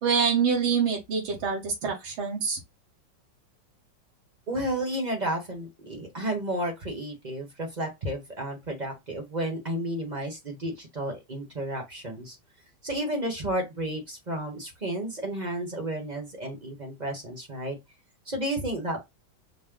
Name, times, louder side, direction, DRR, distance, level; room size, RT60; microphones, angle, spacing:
voice 1, 0.0-2.6, right 6 dB, 90° right, 2.5 m, -25 dB
voice 2, 4.5-12.4 12.8-17.8 18.3-19.0, right 1 dB, 30° right, 1.0 m, -32 dB
6.3 x 2.1 x 3.7 m
omnidirectional pair, 2.2 m